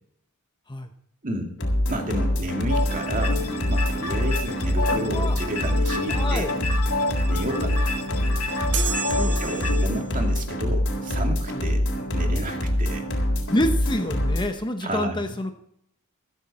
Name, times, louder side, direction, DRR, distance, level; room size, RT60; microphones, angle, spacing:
voice 1, 1.2-1.6 1.9-3.4 3.7-6.5 7.3-7.8 9.4-13.1 14.8-15.4, right 1 dB, 40° right, 3 dB, 2.4 m, -31 dB
sound 1, 1.6-14.5, equal, 55° left, 3.9 m, -25 dB
sound 2, 2.7-9.9, left 3 dB, 90° left, 2.0 m, -30 dB
voice 2, 4.9-5.4 6.1-6.5 9.1-9.4 11.5-11.6 13.5-15.5, left 1 dB, 20° left, 7 dB, 0.9 m, -27 dB
sound 3, 8.7-10.2, right 6 dB, 80° right, 3.4 m, -31 dB
14.5 x 14.0 x 4.2 m, 0.71 s
head